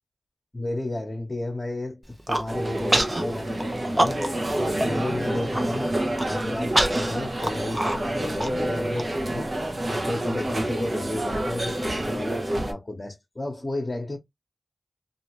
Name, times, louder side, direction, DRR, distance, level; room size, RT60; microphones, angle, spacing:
voice 1, 0.5-14.2, left 1 dB, 35° left, 1.0 m, -33 dB
Human voice, 2.0-2.5 2.9-3.2 3.6-4.5 4.8-4.9 5.3-5.6 6.2-9.0, right 1 dB, 30° right, 0.7 m, -25 dB
sound 1, 2.5-12.7, right 1 dB, 50° right, 1.0 m, -28 dB
2.7 x 2.6 x 2.9 m
cardioid pair, 45°, 0 cm